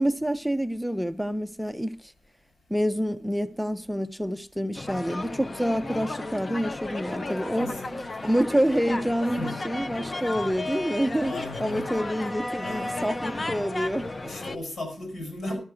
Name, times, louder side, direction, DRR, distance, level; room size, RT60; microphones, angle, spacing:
voice 1, 0.0-2.1 2.7-7.7 8.2-11.3 11.6-14.3, equal, ahead, 0.5 m, -27 dB
sound 1, 4.8-14.6, left 2 dB, 35° left, 0.7 m, -34 dB
voice 2, 7.6-8.3 9.4-10.1 11.2-12.1 12.6-13.2 14.2-15.6, left 1 dB, 75° left, 6.4 m, -37 dB
12.5 x 6.4 x 6.8 m
wide cardioid pair, 95°, 0 cm